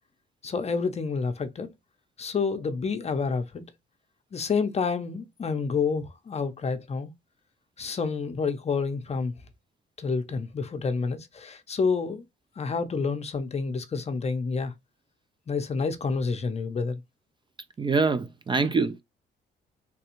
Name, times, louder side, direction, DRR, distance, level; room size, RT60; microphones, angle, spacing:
voice 1, 0.4-1.7 2.2-3.7 4.3-7.1 7.8-9.3 10.0-12.2 12.6-14.7 15.5-17.0, left 5 dB, 35° left, 0.6 m, -29 dB
voice 2, 17.8-19.0, right 4 dB, 25° right, 0.3 m, -24 dB
3.3 x 2.3 x 2.9 m
cardioid pair, 90°, 20 cm